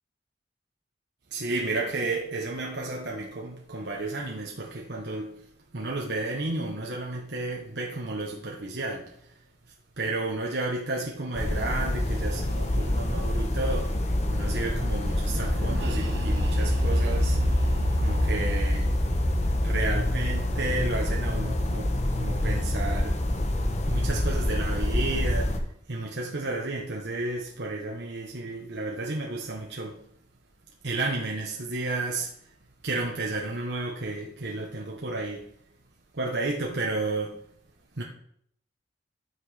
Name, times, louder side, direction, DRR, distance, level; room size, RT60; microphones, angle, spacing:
voice 1, 1.3-5.4 5.7-9.3 10.0-14.0 14.3-17.4 17.9-18.9 19.6-23.2 23.9-30.0 30.8-32.4 32.8-35.5 36.1-37.4 37.9-38.0, right 2 dB, 70° right, 1.2 m, -32 dB
sound 1, 11.3-25.6, left 1 dB, 40° left, 1.2 m, -27 dB
sound 2, 15.2-22.9, equal, 85° right, 1.7 m, -30 dB
12.5 x 6.0 x 5.0 m
head